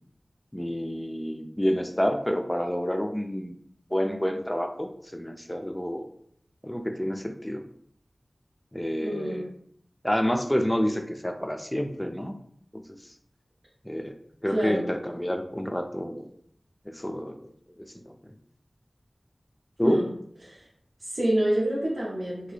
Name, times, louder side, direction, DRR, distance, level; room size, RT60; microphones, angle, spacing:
voice 1, 0.5-3.6 3.9-6.1 6.6-7.6 8.7-9.5 10.0-12.3 12.7-12.8 13.8-14.2 14.4-16.3 16.9-17.4 17.8-18.4 19.8-20.1, equal, 10° left, 6 dB, 0.3 m, -29 dB
voice 2, 9.0-9.5 14.5-14.8 19.8-20.1 20.4-20.6 21.0-22.5, right 1 dB, 85° right, -7 dB, 0.8 m, -27 dB
2.8 x 2.2 x 3.2 m, 0.67 s
wide cardioid pair, 65°, 0 cm